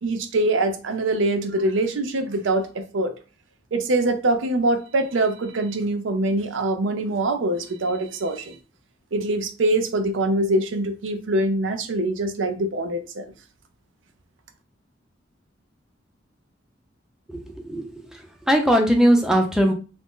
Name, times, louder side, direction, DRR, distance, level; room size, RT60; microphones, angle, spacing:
voice 1, 0.0-3.1 3.7-8.6 9.1-13.3, right 2 dB, 85° right, 0.5 m, -24 dB
voice 2, 17.3-17.9 18.5-19.7, equal, 5° right, 0.4 m, -19 dB
2.5 x 2.0 x 3.6 m
head